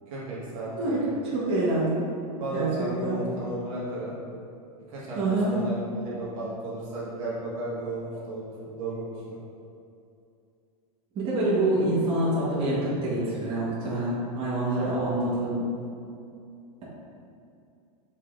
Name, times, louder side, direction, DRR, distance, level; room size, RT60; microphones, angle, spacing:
voice 1, 0.1-1.1 2.4-4.1 4.9-5.2 5.5-9.4 14.7-15.0, right 1 dB, 55° right, -7 dB, 1.4 m, -34 dB
voice 2, 0.8-2.0 2.5-3.2 5.1-5.5 11.1-15.6, right 2 dB, 30° right, -9 dB, 1.3 m, -26 dB
5.5 x 3.6 x 2.6 m, 2.6 s
supercardioid pair, 140°, 20 cm